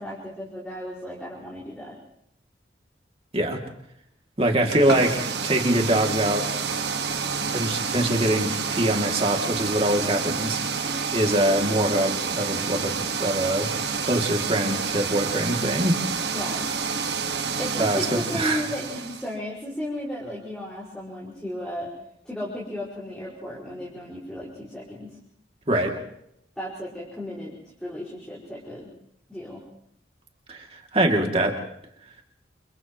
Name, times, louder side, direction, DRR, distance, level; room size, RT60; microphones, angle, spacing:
voice 1, 0.0-2.0 16.3-16.7 17.6-21.9 22.3-25.1 26.6-28.9 29.3-29.6, left 1 dB, 5° left, -7 dB, 5.4 m, -34 dB
voice 2, 4.4-6.5 7.4-10.6 11.1-13.7 14.0-16.0 17.8-18.6 25.7-26.0 30.5-31.6, right 1 dB, 30° right, 2 dB, 2.7 m, -24 dB
sound 1, 4.6-19.3, right 5 dB, 65° right, 1.7 m, -29 dB
29.5 x 29.0 x 3.2 m, 0.75 s
head